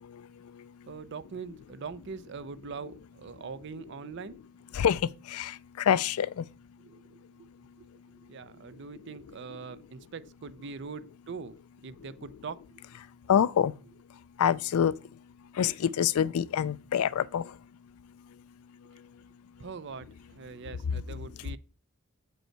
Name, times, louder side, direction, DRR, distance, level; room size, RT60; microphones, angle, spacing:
voice 1, 0.9-4.4 6.8-7.5 7.8-7.9 8.2-11.6 11.8-12.6 19.6-21.6, right 5 dB, 55° right, 0.4 m, -42 dB
voice 2, 4.7-6.5 13.3-13.7 14.4-14.9 15.5-17.6, left 8 dB, 85° left, 0.4 m, -26 dB
7.4 x 5.3 x 4.5 m
head